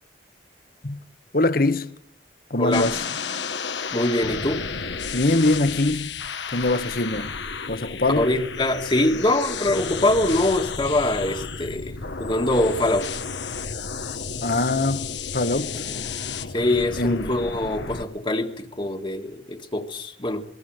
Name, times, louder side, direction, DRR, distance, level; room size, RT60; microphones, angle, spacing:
voice 1, 1.3-1.9 2.5-3.0 5.1-6.2 6.5-7.3 7.7-8.3 14.4-15.8 17.0-17.3, left 2 dB, 50° left, 1.3 m, -23 dB
voice 2, 2.6-2.9 3.9-4.6 8.2-13.1 15.9-16.1 16.5-20.4, left 1 dB, 25° left, 1.8 m, -24 dB
sound 1, 2.7-18.0, left 5 dB, 70° left, 1.4 m, -32 dB
26.0 x 20.5 x 7.8 m
head